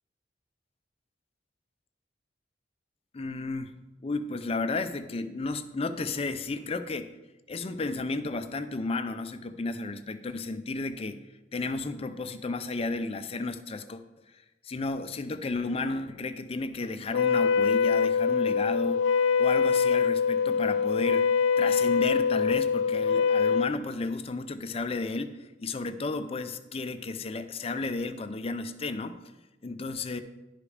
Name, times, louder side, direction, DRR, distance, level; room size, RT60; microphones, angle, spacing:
voice 1, 3.1-7.1 7.5-11.2 11.5-14.0 14.6-19.0 19.4-29.2 29.6-30.2, left 3 dB, 35° left, 10 dB, 0.5 m, -33 dB
Wind instrument woodwind instrument, 17.1-23.7, left 6 dB, 90° left, 0.3 m, -24 dB
11.0 x 5.1 x 5.0 m, 1.1 s
head